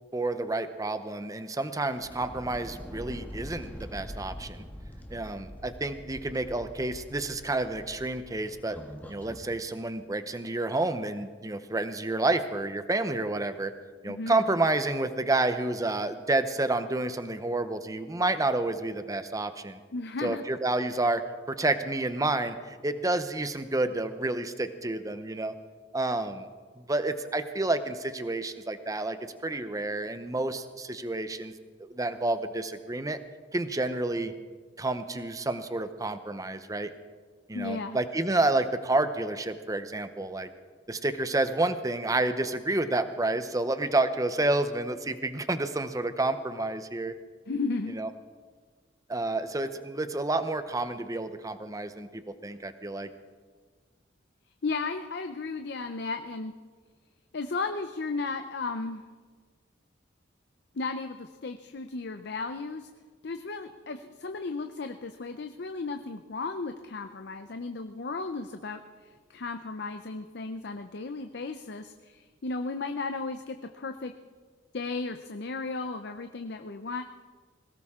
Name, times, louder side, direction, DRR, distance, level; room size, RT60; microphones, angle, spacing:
voice 1, 0.1-4.6 5.1-8.8 9.1-13.7 14.0-19.8 20.2-25.5 25.9-26.5 26.8-29.2 29.4-31.5 31.8-33.2 33.5-34.3 34.8-36.9 37.5-40.5 40.9-47.1 47.9-48.1 49.1-53.1, right 2 dB, 20° right, 10 dB, 0.8 m, -29 dB
sound 1, 1.9-9.5, equal, 10° left, 1.4 m, -44 dB
voice 2, 14.0-14.4 19.9-20.4 37.5-38.0 47.5-48.0 54.6-56.5 57.3-59.0 60.7-62.9 63.2-68.8 69.3-74.1 74.7-77.0, left 3 dB, 60° left, 7 dB, 0.6 m, -34 dB
21.0 x 17.5 x 3.7 m, 1.5 s
head